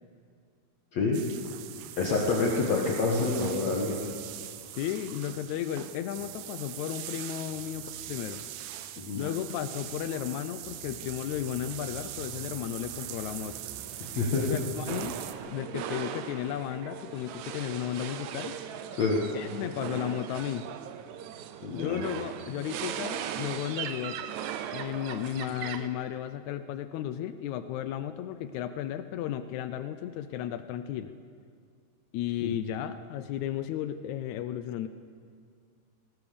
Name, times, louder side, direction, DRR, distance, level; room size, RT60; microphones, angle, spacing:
sound 1, 1.1-15.3, right 12 dB, 90° right, 2.7 m, -41 dB
voice 1, 2.0-4.1 9.0-9.3 14.1-14.5 19.0-19.2 21.6-22.0 32.4-32.5, left 3 dB, 55° left, -2 dB, 2.6 m, -27 dB
voice 2, 4.8-8.5 9.2-13.6 14.4-15.2 15.5-18.6 19.3-20.6 21.7-24.3 24.7-31.1 32.1-34.9, left 11 dB, 85° left, 11 dB, 1.6 m, -34 dB
sound 2, 14.9-25.9, right 10 dB, 75° right, 1.9 m, -38 dB
19.5 x 19.5 x 6.9 m, 2.2 s
omnidirectional pair, 4.1 m